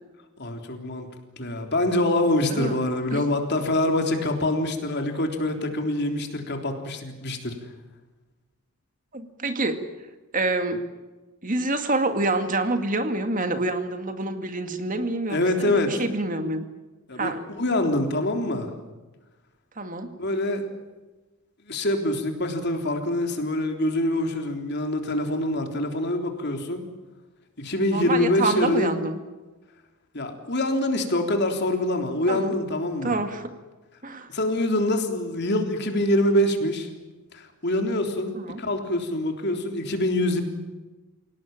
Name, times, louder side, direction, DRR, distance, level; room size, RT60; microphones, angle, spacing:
voice 1, 0.4-1.1 1.4-7.6 15.3-15.9 17.1-18.7 20.2-20.7 21.7-26.8 27.6-28.9 30.1-33.2 34.3-36.9 37.3-40.4, left 1 dB, 50° left, 4 dB, 3.6 m, -25 dB
voice 2, 9.1-9.8 10.3-10.8 11.4-16.7 17.2-17.4 19.8-20.1 27.9-29.2 32.3-32.5 33.0-33.5 34.0-34.3 38.4-38.6, right 2 dB, 40° right, 7 dB, 2.2 m, -27 dB
28.5 x 18.0 x 9.0 m, 1.2 s
head